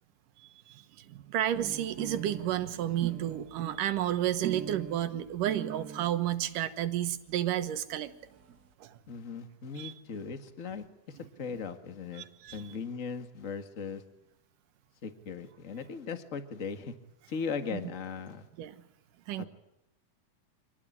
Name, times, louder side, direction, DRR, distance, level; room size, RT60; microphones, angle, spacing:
voice 1, 0.4-8.1 8.8-8.9 9.8-9.9 12.2-12.6 17.7-17.8 18.6-18.7 19.3-19.5, right 12 dB, 90° right, 10 dB, 2.8 m, -32 dB
sound 1, 1.5-6.1 7.0-7.1 7.3-7.4 7.7-7.8 7.9-8.6, right 9 dB, 70° right, 0.8 m, -42 dB
voice 2, 9.1-12.3 12.5-14.0 15.0-17.0 17.3-18.5 19.4-19.5, left 5 dB, 30° left, 8 dB, 1.7 m, -38 dB
26.0 x 19.0 x 10.0 m, 0.85 s
omnidirectional pair, 3.7 m